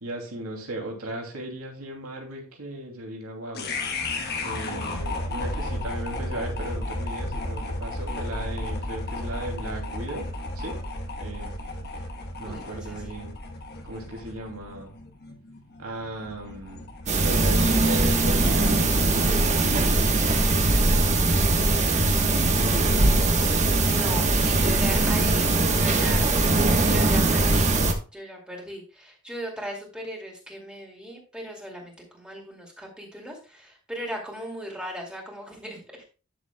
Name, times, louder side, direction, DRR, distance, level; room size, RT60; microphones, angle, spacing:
voice 1, 0.0-3.7 4.4-10.3 10.6-10.8 11.2-11.6 12.4-13.3 13.8-14.9 15.8-16.9 17.2-20.2 21.8-23.4, right 1 dB, 80° right, 1 dB, 2.7 m, -36 dB
sound 1, 3.5-19.8, left 2 dB, 50° left, 1.2 m, -34 dB
voice 2, 12.5-13.1 23.9-26.3 26.9-27.7 28.1-35.8, equal, 5° right, -1 dB, 2.5 m, -37 dB
sound 2, 17.1-27.9, right 2 dB, 35° right, 1.3 m, -21 dB
11.5 x 7.1 x 2.3 m, 0.36 s
head